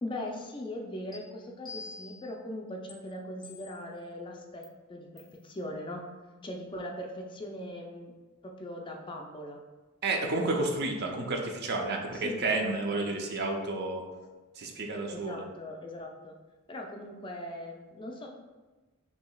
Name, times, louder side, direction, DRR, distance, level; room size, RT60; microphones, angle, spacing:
voice 1, 0.0-4.6 4.9-6.0 6.4-8.1 8.4-9.6 12.1-13.1 15.1-16.3 16.7-18.3, left 1 dB, 25° left, 1 dB, 0.4 m, -40 dB
sound 1, 1.1-1.2 1.7-2.3 2.9-3.0 3.4-4.0 4.6-4.7 5.2-5.4, left 4 dB, ahead, 0.7 m, -46 dB
voice 2, 10.0-14.0 14.6-15.4, right 2 dB, 50° right, 2 dB, 0.5 m, -31 dB
6.0 x 2.7 x 2.3 m, 1.2 s
head